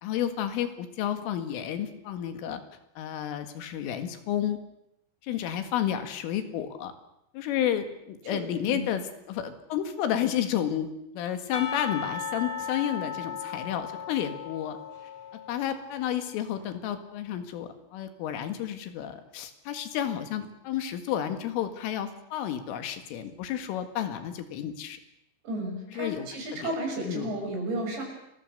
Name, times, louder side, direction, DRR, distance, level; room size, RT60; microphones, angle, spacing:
voice 1, 0.0-2.6 3.0-4.6 5.2-6.9 7.3-14.8 15.5-25.0 25.9-26.3 26.5-26.7 27.0-27.3, left 10 dB, 85° left, 8 dB, 4.4 m, -31 dB
voice 2, 8.3-8.9 25.4-28.0, right 1 dB, 65° right, 2 dB, 8.4 m, -33 dB
Percussion / Church bell, 11.5-16.3, left 6 dB, 35° left, 2.5 m, -37 dB
29.5 x 22.5 x 6.7 m, 0.82 s
omnidirectional pair, 5.6 m